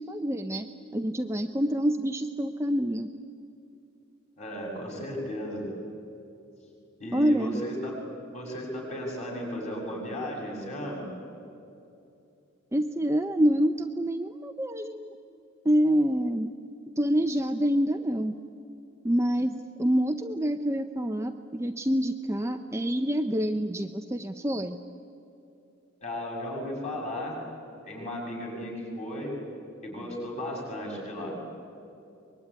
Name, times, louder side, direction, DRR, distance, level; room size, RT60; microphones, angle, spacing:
voice 1, 0.1-0.7 0.9-3.1 7.1-7.6 12.7-15.2 15.6-16.5 17.0-18.3 19.0-24.8, equal, 15° right, 6 dB, 0.6 m, -26 dB
voice 2, 4.4-5.7 7.0-8.0 8.3-11.1 26.0-27.4 27.8-29.3 29.8-31.4, left 1 dB, 35° left, -2 dB, 7.2 m, -35 dB
24.0 x 21.5 x 9.9 m, 2.7 s
head